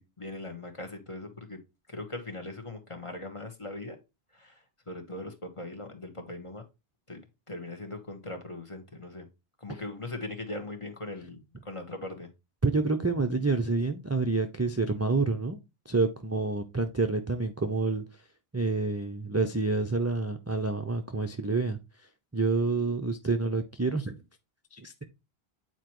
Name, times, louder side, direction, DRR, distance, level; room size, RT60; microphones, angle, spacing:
voice 1, 0.0-1.6 1.9-4.0 4.3-6.6 7.1-7.2 7.5-9.3 9.6-12.3, left 2 dB, 30° left, 1.4 m, -40 dB
voice 2, 12.6-15.6 15.9-18.0 18.5-21.8 22.3-24.2 24.7-25.0, right 3 dB, 20° right, 0.5 m, -28 dB
8.9 x 4.5 x 3.0 m
omnidirectional pair, 1.0 m